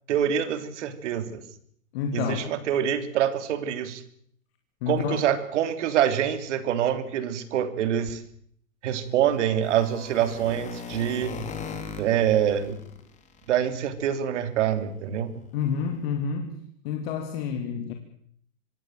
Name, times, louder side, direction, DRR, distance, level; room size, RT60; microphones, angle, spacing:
voice 1, 0.1-1.4 2.1-4.0 4.9-8.2 8.8-11.4 12.0-12.8 13.5-15.5, right 10 dB, 60° right, 11 dB, 3.3 m, -25 dB
voice 2, 1.9-2.5 4.8-5.3 15.5-16.6 16.8-17.9, left 7 dB, 45° left, 5 dB, 2.7 m, -29 dB
sound 1, 8.9-14.1 14.4-14.6 15.0-15.2 15.4-15.5 15.9-16.0, left 6 dB, 15° left, 3.2 m, -39 dB
26.0 x 17.5 x 7.7 m, 0.66 s
hypercardioid pair, 145°, 41 cm